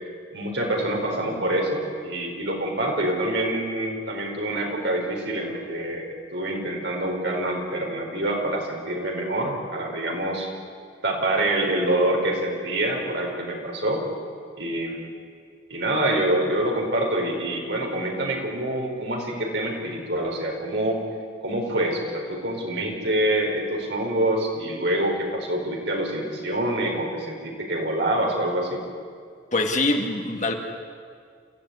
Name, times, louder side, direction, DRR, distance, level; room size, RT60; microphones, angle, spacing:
voice 1, 0.3-10.5 11.0-14.0 14.6-15.1 15.7-21.0 21.4-28.8, right 1 dB, 65° right, 1 dB, 5.1 m, -26 dB
voice 2, 29.5-30.5, left 2 dB, 40° left, 3 dB, 2.2 m, -23 dB
28.0 x 15.5 x 9.7 m, 2.1 s
head